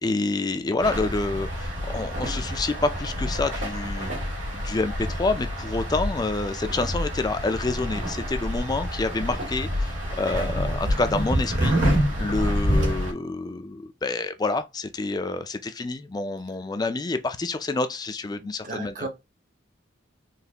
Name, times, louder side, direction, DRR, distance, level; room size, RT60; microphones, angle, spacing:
voice 1, 0.0-19.1, left 3 dB, 20° left, 0.4 m, -28 dB
sound 1, 0.8-13.1, equal, 80° right, 1.9 m, -27 dB
voice 2, 18.3-19.1, right 3 dB, 45° right, 0.7 m, -36 dB
4.1 x 3.0 x 2.8 m
head